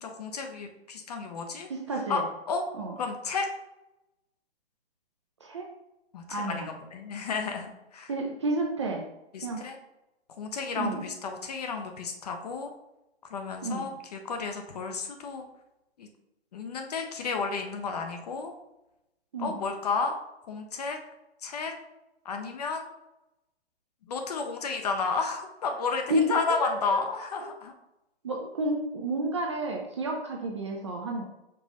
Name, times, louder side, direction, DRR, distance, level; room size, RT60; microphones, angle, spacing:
voice 1, 0.0-1.7 2.1-2.2 2.5-2.6 3.0-3.5 6.1-8.1 9.3-9.8 10.4-12.7 13.3-15.4 16.0-16.1 16.5-18.5 19.4-20.1 20.5-21.0 21.4-21.7 22.3-22.9 24.1-27.7, left 4 dB, 40° left, 4 dB, 0.5 m, -32 dB
voice 2, 1.7-2.2 2.7-3.0 5.4-5.7 6.3-6.7 8.1-9.0 9.4-9.6 10.8-11.0 13.6-13.9 19.3-19.6 26.1-26.4 26.9-27.0 28.2-31.2, right 1 dB, 30° right, 0 dB, 0.4 m, -30 dB
5.3 x 2.4 x 4.0 m, 0.92 s
hypercardioid pair, 150°, 32 cm